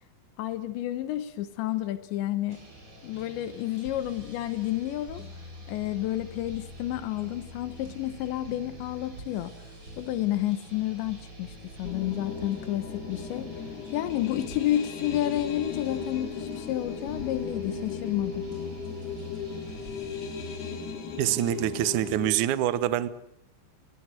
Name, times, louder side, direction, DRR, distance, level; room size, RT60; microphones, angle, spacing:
voice 1, 0.4-2.6 3.0-5.3 5.7-9.5 10.0-13.5 13.9-18.4, left 13 dB, 80° left, 3.3 m, -30 dB
sound 1, 2.5-20.8, equal, 25° right, 5.0 m, -45 dB
sound 2, 11.8-22.3, left 5 dB, 65° left, 5.1 m, -37 dB
voice 2, 21.2-23.1, right 13 dB, 80° right, 1.8 m, -25 dB
29.0 x 17.5 x 7.8 m
omnidirectional pair, 5.1 m